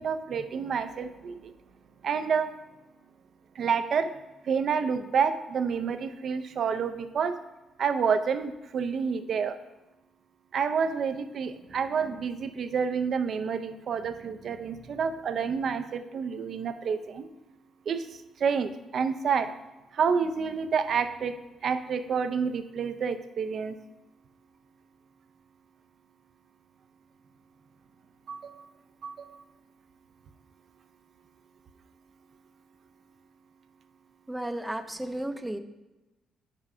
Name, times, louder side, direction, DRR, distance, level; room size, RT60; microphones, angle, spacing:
voice 1, 0.0-1.5 2.0-2.5 3.6-4.1 4.4-7.4 7.8-9.6 10.5-17.3 17.9-18.1 18.4-19.5 19.9-21.3 21.6-23.8 28.3-28.7 29.0-29.4, right 6 dB, 55° right, 10 dB, 0.5 m, -29 dB
voice 2, 34.3-35.6, right 1 dB, 10° right, 9 dB, 0.5 m, -33 dB
5.6 x 4.8 x 4.9 m, 1.1 s
cardioid pair, 90°, 0 cm